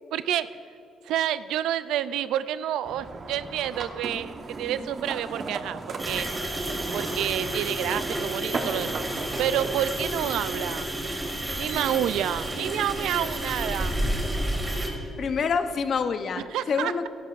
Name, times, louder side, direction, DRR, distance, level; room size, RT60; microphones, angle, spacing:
voice 1, 0.1-0.5 1.0-6.3 6.9-10.9 11.5-13.9 16.4-17.1, right 11 dB, 85° right, 14 dB, 0.3 m, -29 dB
sound 1, 2.8-9.8, right 3 dB, 45° right, 1.0 m, -36 dB
sound 2, 6.0-14.9, right 1 dB, 20° right, 2.2 m, -30 dB
voice 2, 15.2-17.1, left 5 dB, 55° left, 9 dB, 0.7 m, -27 dB
16.0 x 12.0 x 2.5 m, 2.7 s
cardioid pair, 90°, 0 cm